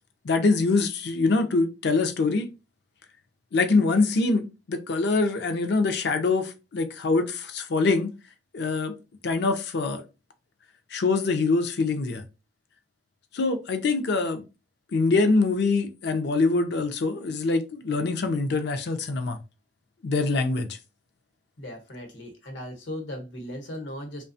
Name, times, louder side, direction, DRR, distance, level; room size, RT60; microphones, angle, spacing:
voice 1, 0.2-2.5 3.5-8.1 8.5-9.0 9.2-10.0 10.9-12.2 13.3-14.4 14.9-19.4 20.0-20.8, left 3 dB, 60° left, 0.5 m, -24 dB
voice 2, 21.6-24.2, left 1 dB, 80° left, 1.0 m, -37 dB
2.7 x 2.2 x 2.6 m
head